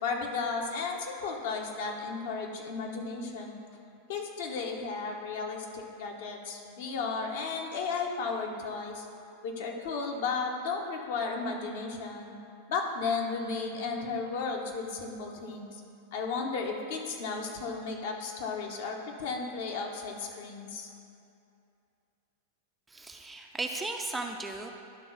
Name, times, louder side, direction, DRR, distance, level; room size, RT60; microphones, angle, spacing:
voice 1, 0.0-3.5 4.1-9.0 9.4-12.3 12.7-15.7 16.1-20.9, left 4 dB, 55° left, 1 dB, 1.0 m, -34 dB
voice 2, 22.9-24.7, right 2 dB, 10° right, 3 dB, 0.5 m, -36 dB
11.5 x 3.8 x 5.8 m, 2.5 s
figure-of-eight pair, 90°, 0 cm